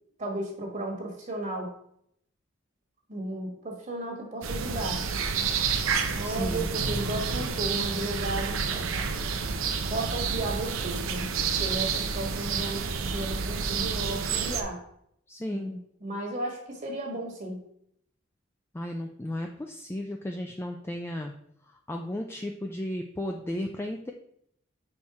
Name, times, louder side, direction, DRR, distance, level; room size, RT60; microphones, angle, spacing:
voice 1, 0.2-1.7 3.1-5.0 6.0-9.1 9.9-11.3 11.6-14.8 15.5-17.6, right 2 dB, 40° right, 1 dB, 1.5 m, -34 dB
sound 1, 4.4-14.6, right 5 dB, 90° right, 0.7 m, -29 dB
voice 2, 6.2-6.8 15.3-15.8 18.7-21.3 21.9-24.1, left 1 dB, 10° left, 2 dB, 0.4 m, -34 dB
5.6 x 4.5 x 4.8 m, 0.71 s
head